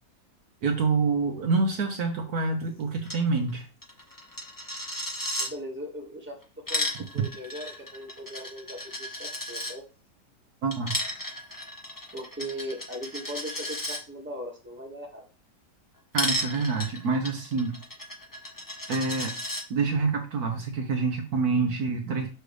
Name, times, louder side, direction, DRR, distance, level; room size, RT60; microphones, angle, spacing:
voice 1, 0.6-3.7 7.1-7.2 10.6-10.9 16.1-17.8 18.9-19.4 19.7-22.3, right 4 dB, 65° right, 4 dB, 1.4 m, -27 dB
Coin (dropping), 3.0-3.2 3.5-3.6 3.8-5.5 6.4-9.7 10.7-14.0 16.1-19.6, left 1 dB, 15° left, 1.0 m, -34 dB
voice 2, 5.4-6.4 6.7-6.9 7.1-9.8 12.1-15.2, equal, 5° right, -1 dB, 1.7 m, -39 dB
6.5 x 6.3 x 3.3 m, 0.34 s
omnidirectional pair, 1.9 m